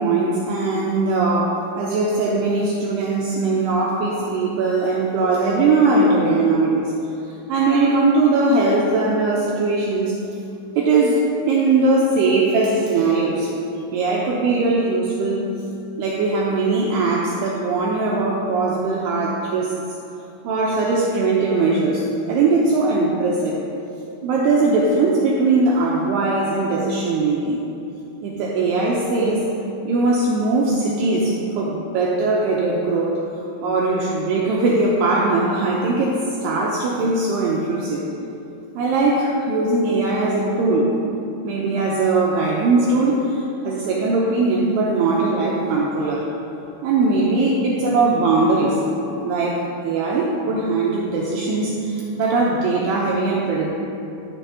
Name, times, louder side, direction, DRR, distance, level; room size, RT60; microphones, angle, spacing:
voice 1, 0.0-6.9 7.5-10.2 10.8-13.5 13.9-15.4 16.0-19.7 20.4-23.6 24.2-27.6 28.2-29.5 29.8-33.2 33.6-38.0 38.8-41.0 41.4-46.3 46.8-48.8 49.2-53.8, right 3 dB, 90° right, -3 dB, 2.3 m, -20 dB
13.5 x 7.3 x 2.8 m, 2.7 s
omnidirectional pair, 5.6 m